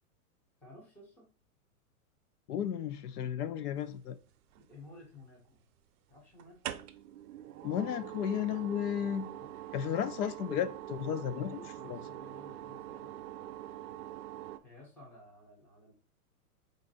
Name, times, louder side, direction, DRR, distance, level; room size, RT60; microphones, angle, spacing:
voice 1, 0.6-1.3 4.6-5.6 6.1-6.6 9.5-10.0 11.4-13.1 14.6-15.9, left 2 dB, 5° left, 0.5 m, -55 dB
voice 2, 2.5-4.2 7.6-9.3 9.7-11.6 11.9-12.0, left 9 dB, 85° left, 0.6 m, -33 dB
sound 1, 4.2-5.0 6.4-14.6, right 12 dB, 85° right, 0.6 m, -44 dB
3.9 x 2.6 x 3.9 m
supercardioid pair, 160°, 45 cm